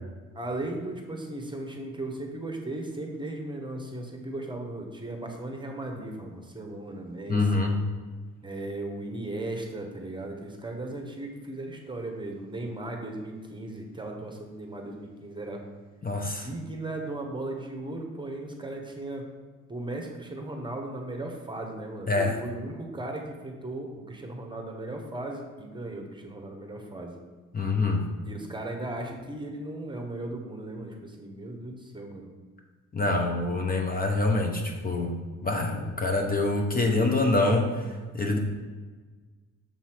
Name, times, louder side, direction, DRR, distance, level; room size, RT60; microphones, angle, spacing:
voice 1, 0.3-7.5 8.4-15.6 16.2-19.3 19.7-27.1 28.2-32.2, right 2 dB, 15° right, 2 dB, 1.1 m, -37 dB
voice 2, 7.3-7.8 16.0-16.5 22.1-22.4 27.5-28.1 32.9-38.4, left 2 dB, 30° left, 2 dB, 0.8 m, -26 dB
6.9 x 3.0 x 5.8 m, 1.4 s
cardioid pair, 90°, 30 cm